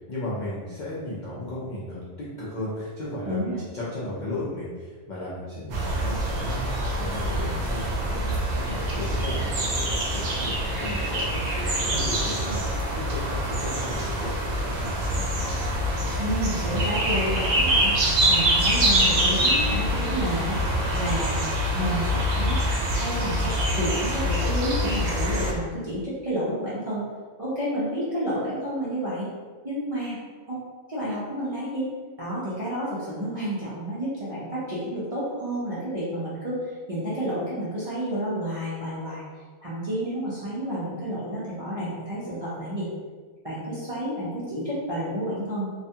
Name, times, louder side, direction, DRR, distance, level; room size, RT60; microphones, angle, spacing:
voice 1, 0.1-6.7 7.0-15.6, left 1 dB, 60° left, -8 dB, 0.5 m, -35 dB
voice 2, 3.3-3.6 16.2-17.9 18.3-20.6 20.9-21.4 21.7-22.6 22.9-27.0 27.4-29.3 29.6-30.2 30.5-30.6 30.9-31.9 32.2-39.2 39.6-42.9 43.4-45.7, equal, 45° right, -10 dB, 0.4 m, -30 dB
sound 1, 5.7-25.5, equal, 70° right, 0.8 m, -25 dB
2.4 x 2.2 x 2.7 m, 1.5 s
omnidirectional pair, 1.3 m